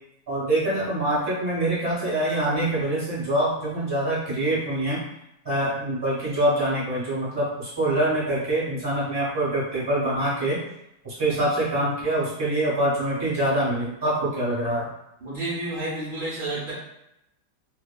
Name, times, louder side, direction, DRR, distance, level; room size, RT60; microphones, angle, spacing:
voice 1, 0.3-5.0 5.4-10.6 11.0-14.9, right 1 dB, 20° right, -7 dB, 0.6 m, -25 dB
voice 2, 15.2-16.7, right 2 dB, 80° right, -9 dB, 0.4 m, -30 dB
2.8 x 2.3 x 2.2 m, 0.84 s
omnidirectional pair, 1.9 m